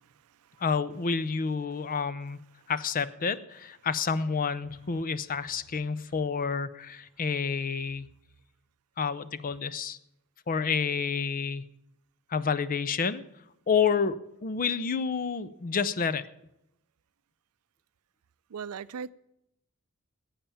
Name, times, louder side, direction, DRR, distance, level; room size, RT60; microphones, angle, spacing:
voice 1, 0.0-0.6 2.6-2.7 18.5-19.1, right 6 dB, 80° right, 0.4 m, -40 dB
voice 2, 0.6-2.4 2.7-8.1 9.0-10.0 10.5-11.6 12.3-13.2 13.7-16.3, left 5 dB, 40° left, 0.5 m, -29 dB
14.5 x 8.7 x 7.0 m
head